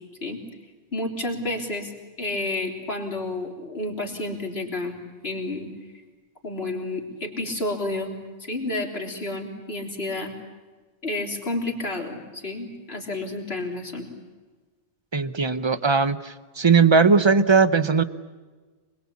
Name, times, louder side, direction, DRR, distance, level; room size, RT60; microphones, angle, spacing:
voice 1, 0.9-5.0 5.2-5.7 5.9-6.0 6.4-8.1 8.4-10.3 11.0-14.1, left 2 dB, 55° left, 1 dB, 3.9 m, -30 dB
voice 2, 15.1-18.0, right 5 dB, 25° right, 13 dB, 0.8 m, -19 dB
25.5 x 22.0 x 8.5 m, 1.4 s
omnidirectional pair, 1.3 m